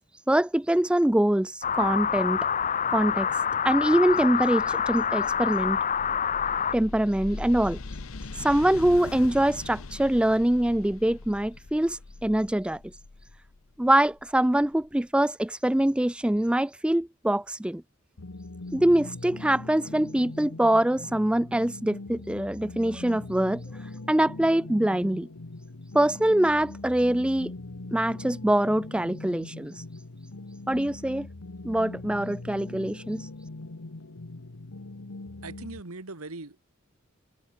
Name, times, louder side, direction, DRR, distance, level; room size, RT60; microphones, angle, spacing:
voice 1, 0.3-2.5 2.9-3.3 3.6-5.8 6.7-7.8 8.4-12.8 13.8-17.8 18.7-23.6 24.1-25.3 25.9-27.5 27.9-29.8 30.7-31.3 31.6-33.3, right 1 dB, 5° right, 0.3 m, -24 dB
sound 1, 1.6-6.7, left 7 dB, 35° left, 0.7 m, -26 dB
sound 2, 5.2-14.9, left 3 dB, 70° left, 1.0 m, -42 dB
sound 3, 18.2-35.8, left 2 dB, 90° left, 1.3 m, -41 dB
voice 2, 35.4-36.6, right 2 dB, 80° right, 1.9 m, -40 dB
head